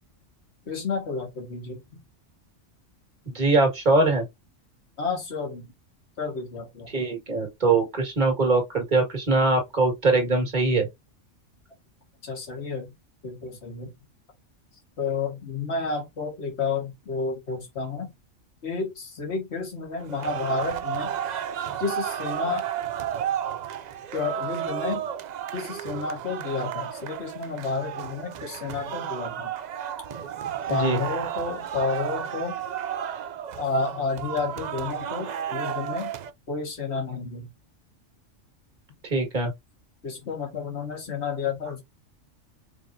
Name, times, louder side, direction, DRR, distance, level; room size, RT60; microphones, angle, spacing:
voice 1, 0.7-2.0 5.0-5.7 6.2-6.9 12.2-12.9 13.2-13.9 15.0-18.1 18.6-21.1 21.8-22.6 24.1-25.0 25.5-29.5 30.7-32.6 33.6-36.1 36.5-37.5 40.0-41.8, left 4 dB, 60° left, 1.9 m, -31 dB
voice 2, 3.3-4.3 6.9-10.9 30.7-31.0 39.0-39.5, right 3 dB, 35° right, 1.8 m, -22 dB
sound 1, 20.0-36.3, right 9 dB, 80° right, 0.4 m, -32 dB
5.1 x 3.5 x 2.6 m
omnidirectional pair, 1.3 m